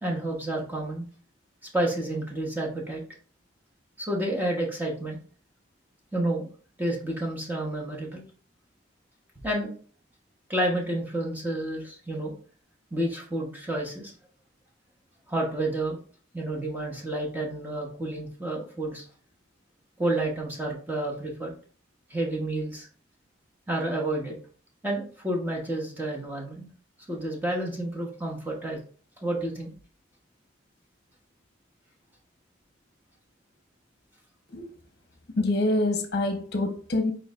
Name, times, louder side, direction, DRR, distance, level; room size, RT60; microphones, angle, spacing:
voice 1, 0.0-1.0 1.7-3.0 4.0-5.2 6.1-6.5 6.8-8.2 9.4-9.7 10.5-12.3 12.9-14.1 15.3-16.0 16.3-19.0 20.0-21.5 22.1-22.9 23.7-24.3 24.8-26.7 27.1-28.8 29.2-29.7, right 1 dB, 10° right, 1.0 m, -30 dB
voice 2, 35.3-37.1, left 2 dB, 55° left, 0.8 m, -26 dB
4.7 x 4.5 x 2.4 m
head